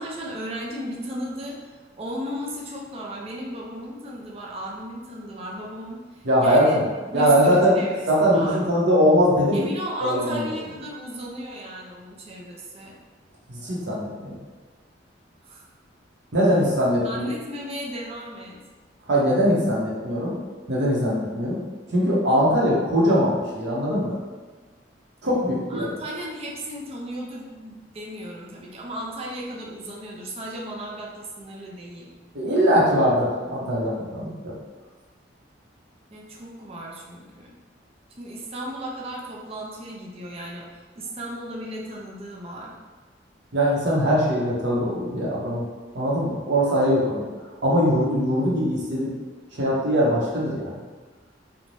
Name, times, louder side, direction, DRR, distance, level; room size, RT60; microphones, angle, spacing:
voice 1, 0.0-1.6 2.0-6.0 6.4-6.8 7.1-8.6 9.5-13.0 15.4-15.6 17.0-18.6 25.7-32.1 36.1-37.6 38.2-42.7, equal, 35° right, -3 dB, 0.5 m, -35 dB
voice 2, 6.2-6.9 7.1-7.8 8.1-9.7 10.0-10.5 13.5-14.3 16.3-17.3 19.1-20.4 20.7-21.6 21.9-24.2 25.2-26.0 32.3-34.5 43.5-45.7 45.9-47.3 47.6-49.1 49.5-50.7, equal, 65° right, -5 dB, 0.8 m, -21 dB
2.6 x 2.1 x 3.1 m, 1.4 s
head